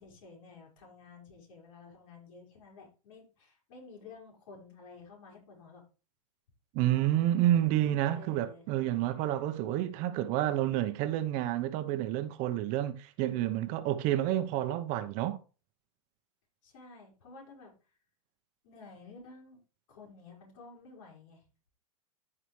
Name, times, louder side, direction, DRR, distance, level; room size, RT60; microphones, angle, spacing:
voice 1, 0.0-5.8 8.1-8.6 16.6-17.7 18.6-19.6 19.9-21.4, left 4 dB, 65° left, 4.9 m, -52 dB
voice 2, 6.7-15.4, right 13 dB, 45° right, 0.9 m, -29 dB
14.0 x 5.0 x 3.2 m
hypercardioid pair, 125°, 18 cm